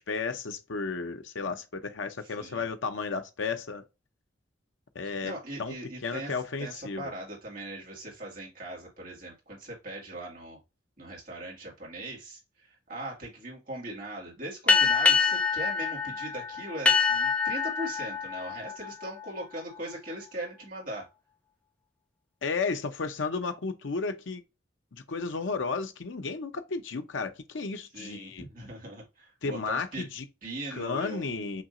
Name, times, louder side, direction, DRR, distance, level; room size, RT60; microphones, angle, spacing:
voice 1, 0.0-3.8 4.9-5.3 5.6-5.7 6.0-7.1 22.4-24.4 24.9-28.4 29.4-30.2 30.7-31.6, left 4 dB, 85° left, 0.7 m, -33 dB
voice 2, 2.2-2.7 5.0-10.6 11.0-21.1 27.9-30.1 30.4-31.5, right 1 dB, 45° right, 2.0 m, -40 dB
sound 1, 14.7-19.8, left 5 dB, 5° left, 0.6 m, -26 dB
5.9 x 2.8 x 2.5 m
head